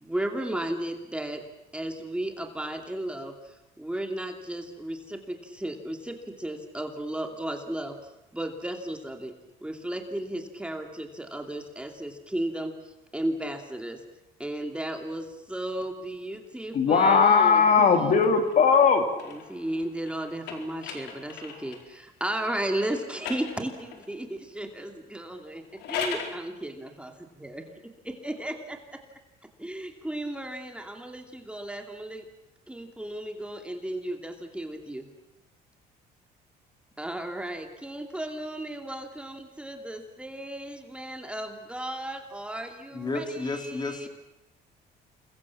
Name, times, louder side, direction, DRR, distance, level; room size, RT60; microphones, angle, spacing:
voice 1, 0.0-1.4 1.7-9.3 9.6-14.0 14.4-17.9 19.3-27.1 27.4-28.8 29.6-32.2 32.7-35.1 37.0-44.1, right 1 dB, 5° right, 4 dB, 2.7 m, -34 dB
voice 2, 16.7-19.0, left 5 dB, 50° left, 6 dB, 3.2 m, -19 dB
sound 1, 17.9-21.9 22.8-24.1 25.6-26.4, left 6 dB, 85° left, 4.3 m, -39 dB
voice 3, 42.9-44.1, left 3 dB, 25° left, 5 dB, 4.0 m, -32 dB
28.5 x 22.5 x 7.3 m, 0.92 s
cardioid pair, 110°, 17 cm